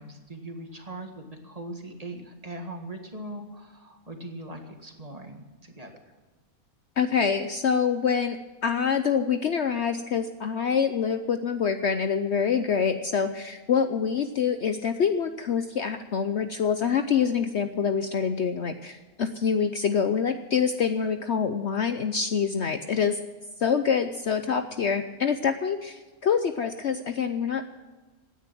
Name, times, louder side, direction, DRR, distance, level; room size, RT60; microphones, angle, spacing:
voice 1, 0.0-6.2, right 1 dB, 25° right, 4 dB, 1.8 m, -40 dB
voice 2, 7.0-23.2 23.6-27.6, left 6 dB, 55° left, 8 dB, 0.9 m, -26 dB
17.0 x 10.0 x 6.1 m, 1.3 s
omnidirectional pair, 1.6 m